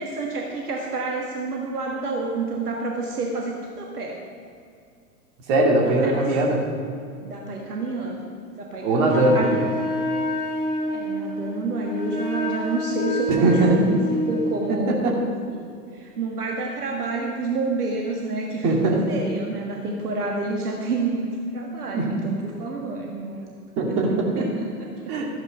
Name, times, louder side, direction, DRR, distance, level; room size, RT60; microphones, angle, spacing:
voice 1, 0.0-4.2 5.8-6.3 7.2-9.7 10.9-15.2 15.5-23.5 23.9-24.0 24.4-25.1, right 3 dB, 70° right, -1 dB, 1.6 m, -29 dB
voice 2, 5.5-6.6 8.8-9.4 13.3-13.9 15.0-15.1 18.6-19.0 21.9-22.1 23.8-24.4 25.1-25.4, right 2 dB, 40° right, -1 dB, 2.6 m, -20 dB
Wind instrument woodwind instrument, 9.1-14.6, equal, 40° left, 3.5 m, -28 dB
13.5 x 9.1 x 5.3 m, 2.4 s
figure-of-eight pair, 95°, 48 cm